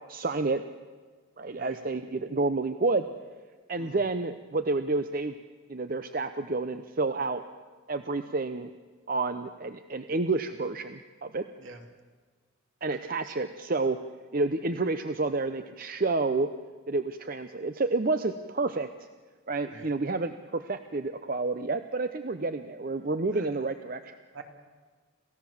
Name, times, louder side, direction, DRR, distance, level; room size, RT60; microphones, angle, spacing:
voice 1, 0.1-0.6 1.4-3.1 3.7-5.3 5.7-7.4 7.9-8.7 9.1-11.5 12.8-14.0 14.3-16.5 16.9-18.9 19.5-24.2, right 3 dB, 45° right, 9 dB, 0.7 m, -29 dB
voice 2, 1.6-1.8 3.8-4.0 11.6-11.8 13.2-13.3 19.7-19.9 23.3-23.4 24.3-24.4, right 4 dB, 70° right, 4 dB, 2.8 m, -45 dB
28.0 x 15.5 x 7.2 m, 1.5 s
head